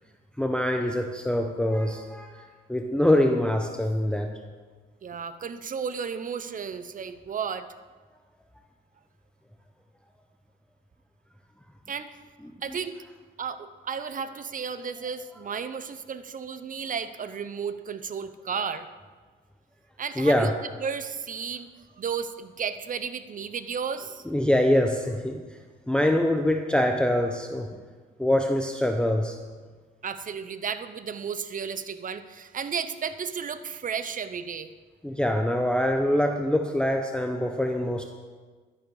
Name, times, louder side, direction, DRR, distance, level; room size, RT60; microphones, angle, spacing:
voice 1, 0.4-4.4 12.7-12.8 20.2-20.5 24.3-25.4 25.9-27.8 28.2-29.4 35.0-38.0, left 1 dB, 5° left, 4 dB, 0.8 m, -24 dB
voice 2, 5.0-7.7 11.9-12.1 12.6-13.0 13.4-18.9 20.0-20.5 20.8-21.7 22.0-24.3 30.0-34.7, right 6 dB, 40° right, 11 dB, 0.8 m, -33 dB
12.0 x 10.5 x 4.9 m, 1.4 s
cardioid pair, 90°, 20 cm